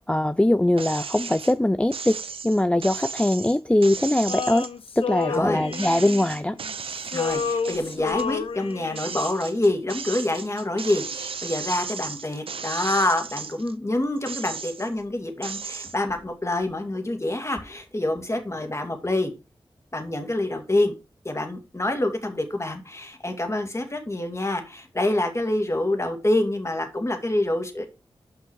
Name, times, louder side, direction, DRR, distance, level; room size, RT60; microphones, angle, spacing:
voice 1, 0.0-2.2 2.4-4.7 5.0-6.6, left 1 dB, 10° left, 0.4 m, -21 dB
sound 1, 0.8-1.5 1.9-5.4 5.7-8.3 8.7-13.7 14.2-15.0 15.4-16.0, right 5 dB, 80° right, 0.7 m, -35 dB
Male singing, 4.3-6.7 7.0-9.2, left 6 dB, 80° left, 0.5 m, -30 dB
voice 2, 5.3-5.6 7.1-19.3 19.9-20.9 21.2-27.9, left 1 dB, 30° left, 2.3 m, -26 dB
5.9 x 5.6 x 6.2 m
cardioid pair, 40°, 9 cm